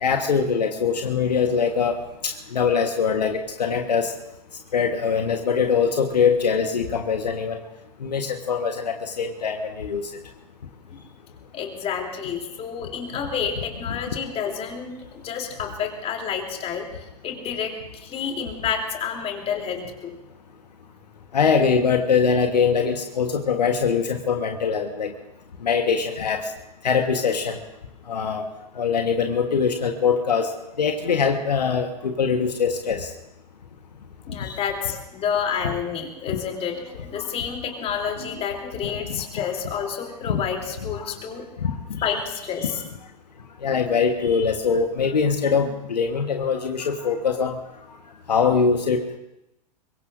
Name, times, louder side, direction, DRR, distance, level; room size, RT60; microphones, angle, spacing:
voice 1, 0.0-2.0 2.2-4.1 4.7-7.6 8.0-10.1 13.9-14.0 21.3-25.1 25.6-26.5 26.8-27.6 28.1-28.5 28.7-30.5 30.8-33.1 34.4-34.6 37.1-37.2 38.0-38.1 40.3-40.4 41.0-41.1 41.6-42.0 43.6-47.6 48.3-49.2, left 6 dB, 75° left, 5 dB, 1.3 m, -22 dB
voice 2, 11.5-16.9 17.2-20.1 34.3-41.4 42.0-42.8, left 7 dB, 30° left, 2 dB, 3.2 m, -29 dB
24.0 x 22.0 x 2.6 m, 0.90 s
figure-of-eight pair, 95°, 21 cm